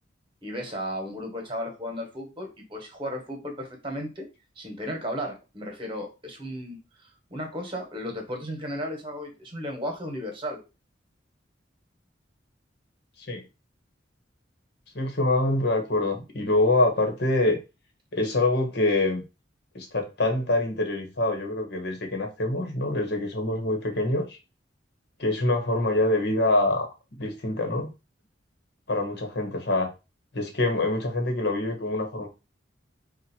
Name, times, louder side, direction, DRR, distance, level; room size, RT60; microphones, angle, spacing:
voice 1, 0.4-4.2 4.6-6.8 7.3-10.6, equal, 30° right, 3 dB, 1.4 m, -34 dB
voice 2, 14.9-17.6 18.1-19.2 19.7-24.4 25.2-26.9 27.2-27.9 28.9-29.9 30.3-32.3, left 2 dB, 60° left, 4 dB, 1.3 m, -25 dB
4.4 x 2.5 x 4.5 m, 0.28 s
head